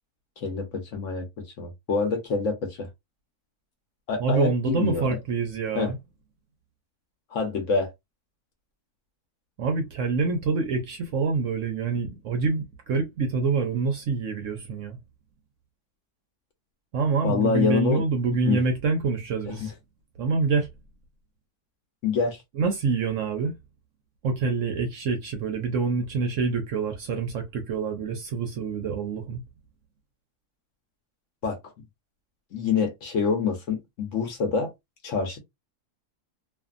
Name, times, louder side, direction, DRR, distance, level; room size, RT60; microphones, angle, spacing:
voice 1, 0.4-1.3 1.6-2.9 4.1-5.2 5.8-5.9 7.3-7.9 17.2-18.0 18.4-18.6 19.4-19.7 22.0-22.4 31.4-31.6 32.5-34.7 35.0-35.4, left 5 dB, 60° left, 1.0 m, -26 dB
voice 2, 4.2-6.0 9.6-15.0 16.9-19.7 20.2-20.7 22.5-23.5 24.2-29.4, right 4 dB, 65° right, 0.8 m, -26 dB
2.6 x 2.5 x 2.4 m
omnidirectional pair, 1.7 m